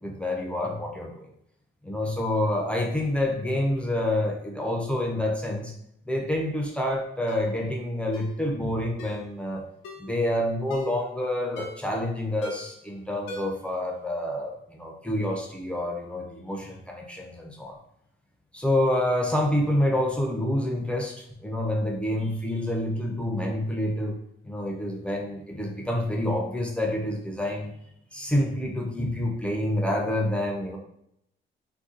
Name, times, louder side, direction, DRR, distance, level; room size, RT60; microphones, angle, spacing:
voice 1, 0.0-1.3 1.8-5.7 6.1-9.6 10.0-17.8 18.5-24.1 24.4-27.7 28.1-30.8, left 1 dB, 5° left, 0 dB, 0.6 m, -28 dB
Ringtone, 7.3-7.5 8.1-8.4 9.0-9.2 9.8-10.1 10.7-11.0 11.6-11.9 12.4-12.8 13.3-13.7 14.0-14.1, left 2 dB, 85° left, 0.6 m, -40 dB
2.6 x 2.3 x 3.8 m, 0.75 s
cardioid pair, 90°, 20 cm